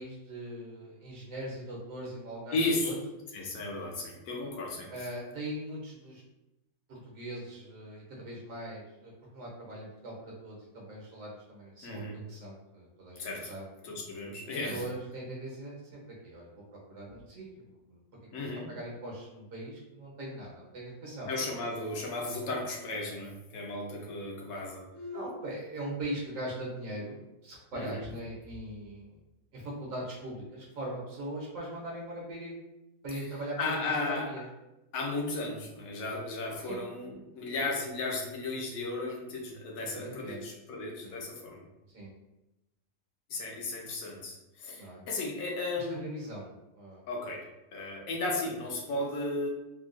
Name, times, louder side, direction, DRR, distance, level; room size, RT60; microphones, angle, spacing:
voice 1, 0.0-2.6 2.8-2.9 4.9-6.2 6.9-13.7 14.4-18.0 18.4-21.3 24.9-29.2 29.5-32.6 33.0-33.7 34.1-34.4 36.7-36.9 39.8-40.4 41.0-41.2 41.9-42.1 44.8-45.0 45.8-47.0, right 1 dB, 60° right, -4 dB, 1.1 m, -41 dB
voice 2, 2.5-2.9 3.3-5.1 11.8-12.2 13.2-13.5 13.8-14.8 17.1-17.2 18.3-18.7 21.3-24.8 27.7-28.0 33.1-33.2 33.6-34.3 34.9-41.7 43.3-46.0 47.1-47.5 47.7-49.5, left 2 dB, 65° left, -1 dB, 1.0 m, -35 dB
3.7 x 2.3 x 2.5 m, 0.96 s
omnidirectional pair, 1.8 m